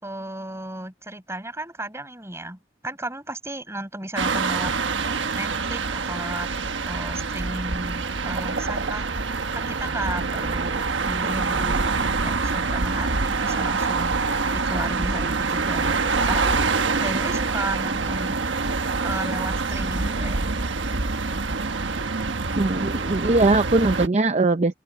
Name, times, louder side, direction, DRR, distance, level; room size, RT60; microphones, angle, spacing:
voice 1, 0.0-4.7 5.3-6.5 6.9-9.1 9.5-12.0 12.2-14.1 14.5-16.6 17.0-18.4 19.0-20.5, right 1 dB, 15° right, 5.1 m, -34 dB
sound 1, 4.2-24.1, right 4 dB, 80° right, 1.3 m, -25 dB
voice 2, 22.6-24.7, right 2 dB, 35° right, 0.7 m, -20 dB
head